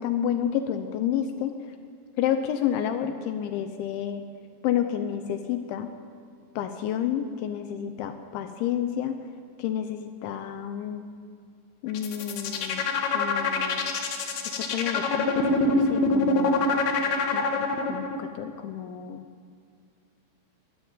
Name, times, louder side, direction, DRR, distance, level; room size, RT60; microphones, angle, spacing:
voice 1, 0.0-1.5 2.2-4.2 4.6-5.9 6.6-9.1 9.6-11.0 11.8-13.9 14.6-16.7 17.3-19.2, left 9 dB, 80° left, 8 dB, 3.1 m, -30 dB
sound 1, 11.9-18.2, left 5 dB, 60° left, 3.3 m, -25 dB
22.5 x 14.0 x 9.0 m, 2.2 s
omnidirectional pair, 5.5 m